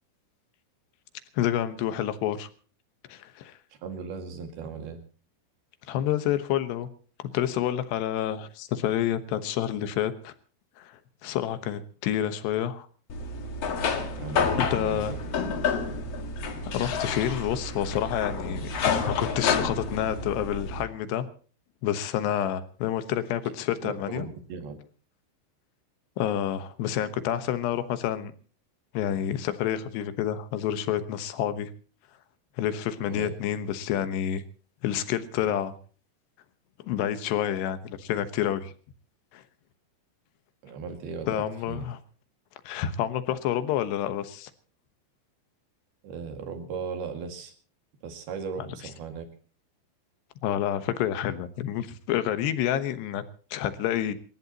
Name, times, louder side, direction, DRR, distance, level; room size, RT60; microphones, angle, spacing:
voice 1, 1.4-2.5 3.1-3.6 5.9-6.9 7.3-10.3 10.8-12.9 14.6-15.2 16.7-21.3 21.8-24.3 26.2-28.3 28.9-31.7 32.6-34.4 34.8-35.7 36.8-38.7 39.3-39.4 41.3-42.0 42.7-44.5 50.4-53.2 53.5-54.1, left 10 dB, 70° left, 11 dB, 3.0 m, -28 dB
voice 2, 3.8-5.0 14.2-15.2 23.8-24.8 33.1-33.4 40.6-41.9 46.0-47.5 48.0-49.3, right 5 dB, 60° right, 6 dB, 3.7 m, -37 dB
sound 1, 13.1-20.8, left 5 dB, 55° left, 1.8 m, -29 dB
27.5 x 15.0 x 2.9 m, 0.40 s
omnidirectional pair, 5.5 m